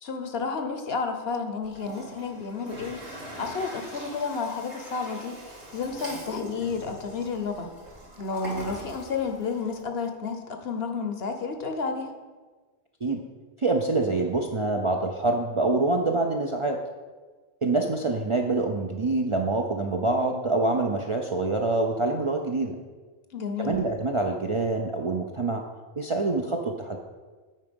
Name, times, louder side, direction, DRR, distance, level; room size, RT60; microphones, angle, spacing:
voice 1, 0.0-3.0 3.4-5.4 5.7-7.7 8.2-12.1 23.3-23.8, left 4 dB, 65° left, 6 dB, 1.0 m, -31 dB
Toilet flush, 1.6-9.8, right 1 dB, 75° right, 2.2 m, -42 dB
voice 2, 13.6-16.8 17.6-22.8 23.6-25.7 26.0-27.0, right 2 dB, 40° right, 1 dB, 0.4 m, -26 dB
8.5 x 4.7 x 5.3 m, 1.3 s
omnidirectional pair, 1.2 m